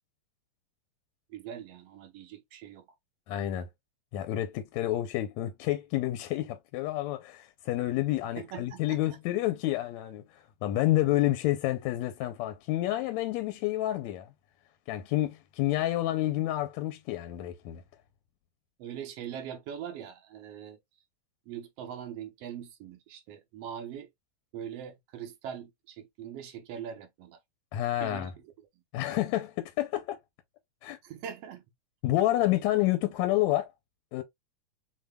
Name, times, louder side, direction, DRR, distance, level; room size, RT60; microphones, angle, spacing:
voice 1, 1.3-2.9 8.4-9.0 18.8-20.8 21.5-24.1 24.5-27.4 28.0-28.3 31.0-31.6, right 9 dB, 65° right, 1.7 m, -42 dB
voice 2, 3.3-3.7 4.1-14.3 14.9-17.8 27.7-28.3 28.9-30.2 30.8-31.0 32.0-33.7 34.1-34.2, left 15 dB, 80° left, 1.8 m, -29 dB
6.6 x 3.3 x 2.2 m
omnidirectional pair, 3.4 m